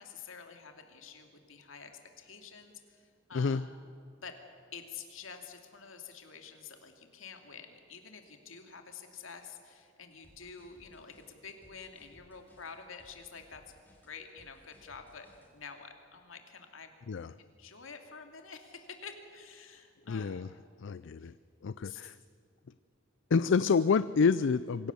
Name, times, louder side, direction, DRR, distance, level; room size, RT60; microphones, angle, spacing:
voice 1, 0.0-1.9 2.2-3.9 4.2-4.4 4.7-13.6 14.0-16.9 17.4-20.6 21.2-21.3 21.8-22.1, left 6 dB, 80° left, 5 dB, 2.5 m, -48 dB
sound 1, 10.2-15.5, equal, 10° left, 4.0 m, -62 dB
voice 2, 20.1-20.5 20.8-21.3 21.6-22.2 23.3-24.9, left 5 dB, 65° left, 15 dB, 0.4 m, -28 dB
25.5 x 16.5 x 7.0 m, 2.5 s
head